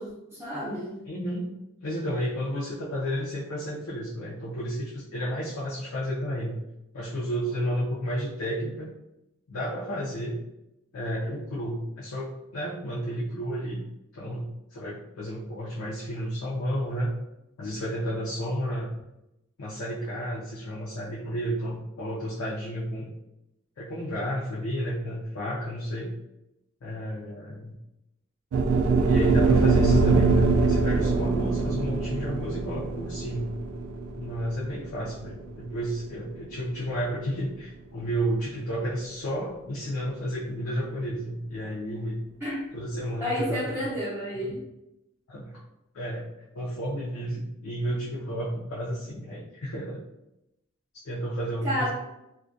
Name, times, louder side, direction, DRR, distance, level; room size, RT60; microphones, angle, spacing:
voice 1, 0.0-1.0 42.4-42.6 43.2-44.6 51.6-51.9, equal, 10° right, -9 dB, 0.5 m, -30 dB
voice 2, 1.1-1.5 1.8-6.6 6.9-8.9 9.5-10.4 10.9-13.8 14.1-17.1 17.6-19.0 19.6-23.1 23.8-26.1 26.8-27.7 29.0-33.6 34.2-42.2 42.7-43.9 44.3-44.4 45.3-45.6 45.9-46.3 46.5-50.0 51.0-51.9, equal, 75° left, -6 dB, 0.5 m, -32 dB
sound 1, 28.5-36.8, right 4 dB, 85° right, 0.3 m, -23 dB
2.3 x 2.1 x 2.5 m, 0.88 s
head